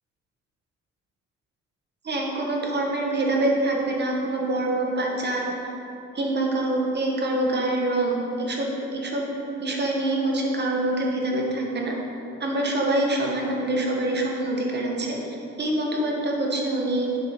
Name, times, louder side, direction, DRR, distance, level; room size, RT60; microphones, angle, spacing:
voice 1, 2.0-5.4 6.1-9.2 9.6-11.9 12.4-15.2 15.6-17.1, right 1 dB, 35° right, -1 dB, 1.2 m, -25 dB
7.5 x 4.5 x 3.6 m, 3.0 s
cardioid pair, 90°, 30 cm